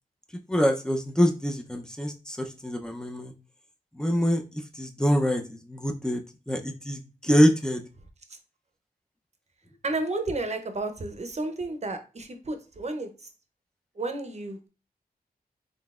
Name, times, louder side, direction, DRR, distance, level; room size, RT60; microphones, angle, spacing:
voice 1, 0.5-3.3 4.0-6.2 6.5-7.8, equal, 5° left, 4 dB, 0.6 m, -25 dB
voice 2, 9.8-13.3 14.0-14.7, right 2 dB, 45° right, 7 dB, 0.7 m, -32 dB
3.9 x 3.3 x 2.4 m, 0.33 s
cardioid pair, 60°, 16 cm